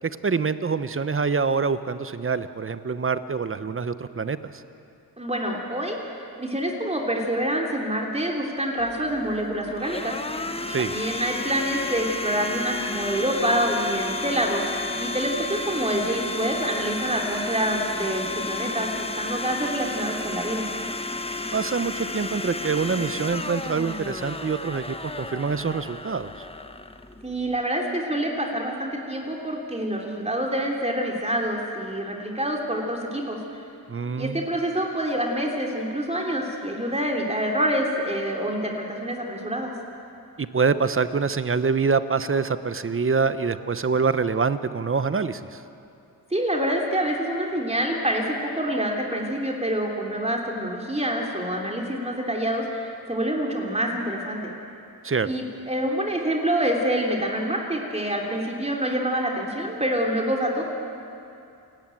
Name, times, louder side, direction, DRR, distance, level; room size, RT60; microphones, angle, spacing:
voice 1, 0.0-4.6 10.7-10.9 21.5-26.5 33.9-34.5 40.4-45.6 55.0-55.3, right 5 dB, 35° right, 12 dB, 0.9 m, -25 dB
voice 2, 5.2-10.1 10.8-14.6 15.0-20.6 27.2-33.6 34.2-39.7 46.3-54.5 55.2-60.6, right 1 dB, 15° right, 0 dB, 3.1 m, -26 dB
Domestic sounds home sounds, 8.8-27.6, left 2 dB, 15° left, 1.2 m, -32 dB
28.5 x 11.0 x 9.2 m, 2.6 s
cardioid pair, 60°, 38 cm